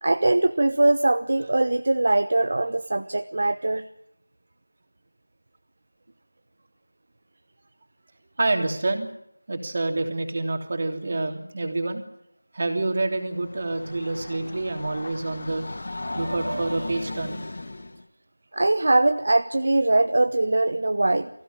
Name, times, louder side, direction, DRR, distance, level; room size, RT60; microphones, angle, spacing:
voice 1, 0.0-3.9 18.5-21.3, right 2 dB, 50° right, 9 dB, 1.1 m, -21 dB
voice 2, 8.4-9.1 9.5-12.0 12.5-15.7 16.1-17.4, right 2 dB, 35° right, 5 dB, 3.1 m, -27 dB
Train, 13.1-18.0, left 2 dB, 45° left, 2.2 m, -36 dB
23.5 x 16.0 x 8.8 m, 0.80 s
figure-of-eight pair, 175°, 0 cm